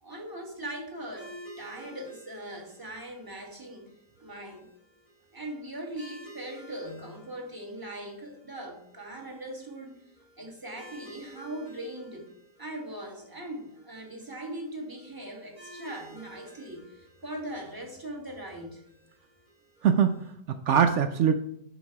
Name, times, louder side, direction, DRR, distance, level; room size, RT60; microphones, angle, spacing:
voice 1, 0.0-3.9 4.2-4.7 5.3-10.0 10.4-12.3 12.6-18.8, right 1 dB, 15° right, 2 dB, 1.5 m, -40 dB
sound 1, 1.2-20.3, right 1 dB, 55° right, 4.3 m, -53 dB
voice 2, 19.8-21.4, right 7 dB, 80° right, 8 dB, 0.6 m, -23 dB
9.0 x 6.1 x 4.7 m, 0.73 s
omnidirectional pair, 1.8 m